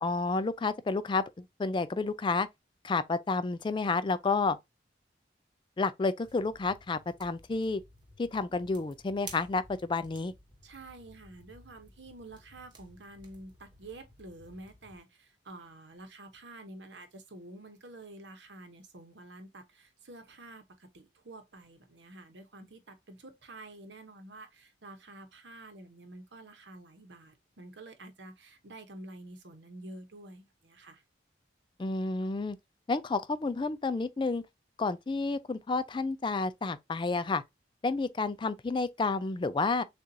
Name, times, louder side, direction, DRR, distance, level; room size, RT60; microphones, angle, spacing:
voice 1, 0.0-2.5 2.8-4.6 5.8-7.8 8.2-10.3 31.8-32.6 32.9-34.4 34.8-37.4 37.8-39.8, left 3 dB, 25° left, 0.3 m, -30 dB
sound 1, 6.2-15.0, right 2 dB, 25° right, 1.0 m, -54 dB
voice 2, 10.6-31.0, right 2 dB, 70° right, 1.0 m, -49 dB
6.7 x 2.5 x 2.7 m
head